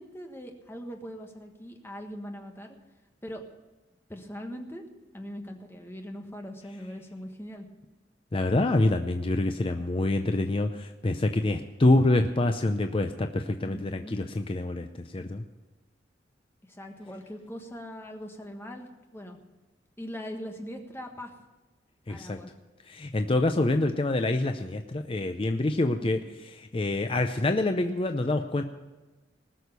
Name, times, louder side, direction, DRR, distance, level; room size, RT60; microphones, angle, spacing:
voice 1, 0.0-2.8 3.2-3.4 4.1-4.8 5.1-7.7 13.6-14.2 16.7-19.4 20.0-21.3 22.1-22.5 26.0-26.1, equal, 15° left, 3 dB, 1.4 m, -41 dB
voice 2, 8.3-15.4 22.1-22.4 22.9-26.2 26.7-28.6, left 2 dB, 30° left, 6 dB, 0.5 m, -26 dB
19.0 x 6.4 x 6.8 m, 1.2 s
head